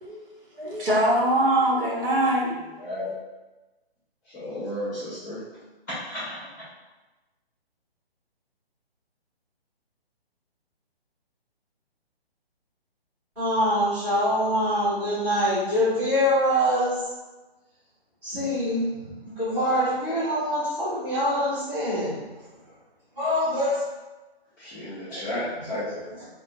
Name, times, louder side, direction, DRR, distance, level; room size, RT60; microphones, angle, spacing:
voice 1, 0.6-2.5, right 1 dB, 60° right, -6 dB, 1.2 m, -22 dB
voice 2, 2.8-3.1 4.3-5.4 5.9-6.5 24.6-25.8, left 1 dB, 15° left, -11 dB, 1.1 m, -33 dB
voice 3, 13.3-17.0 18.2-22.3 23.1-23.8 25.1-26.3, equal, 5° right, -18 dB, 1.0 m, -25 dB
3.6 x 2.4 x 2.5 m, 1.2 s
hypercardioid pair, 170°, 31 cm